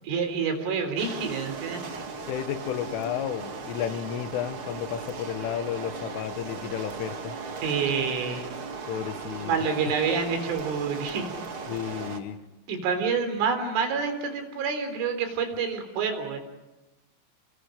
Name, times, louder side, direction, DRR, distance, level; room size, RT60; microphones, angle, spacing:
voice 1, 0.1-1.8 7.6-8.5 9.2-11.3 12.7-16.4, right 5 dB, 80° right, 7 dB, 6.2 m, -28 dB
sound 1, 1.0-12.2, right 4 dB, 65° right, 1.3 m, -37 dB
voice 2, 2.3-7.4 8.9-9.6 11.7-12.5, left 10 dB, 90° left, 10 dB, 3.8 m, -32 dB
30.0 x 29.5 x 5.1 m, 1.0 s
omnidirectional pair, 5.5 m